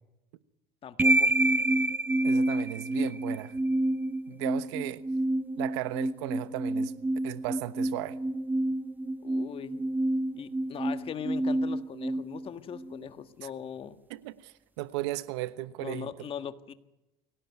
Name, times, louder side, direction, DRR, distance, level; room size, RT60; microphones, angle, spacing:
voice 1, 0.8-1.4 9.2-9.8 10.3-14.0 15.8-16.7, left 8 dB, 40° left, 1.7 m, -40 dB
sound 1, 1.0-13.0, right 1 dB, 15° right, 0.9 m, -28 dB
voice 2, 2.2-3.6 4.3-5.0 5.6-6.9 7.2-8.2 13.4-13.5 14.1-16.1, right 16 dB, 90° right, 1.2 m, -36 dB
23.0 x 18.0 x 9.6 m
supercardioid pair, 105°, 14 cm